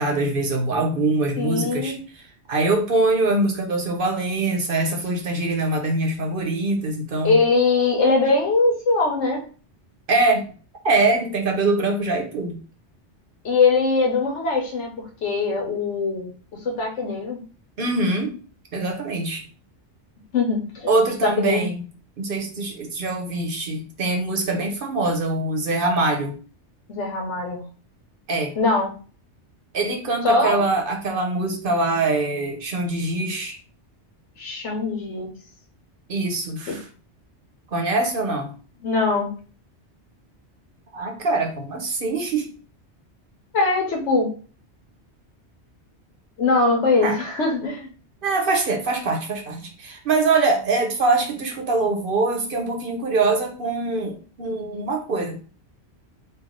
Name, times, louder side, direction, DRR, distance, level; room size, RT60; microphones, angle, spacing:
voice 1, 0.0-1.9 2.5-7.4 10.1-10.5 10.8-12.6 17.8-18.4 18.7-19.4 20.9-21.8 22.2-26.3 28.3-28.5 29.7-33.6 36.1-36.8 37.7-38.5 40.9-42.5 47.0-47.2 48.2-55.4, right 3 dB, 55° right, 3 dB, 0.9 m, -23 dB
voice 2, 1.4-2.0 7.2-9.4 13.4-17.4 20.3-20.9 21.2-21.7 26.9-27.6 28.5-28.9 30.2-30.6 34.4-35.3 36.7-36.8 38.8-39.3 43.5-44.4 46.4-47.9, left 3 dB, 80° left, 2 dB, 1.2 m, -22 dB
3.4 x 2.4 x 3.6 m, 0.38 s
omnidirectional pair, 1.2 m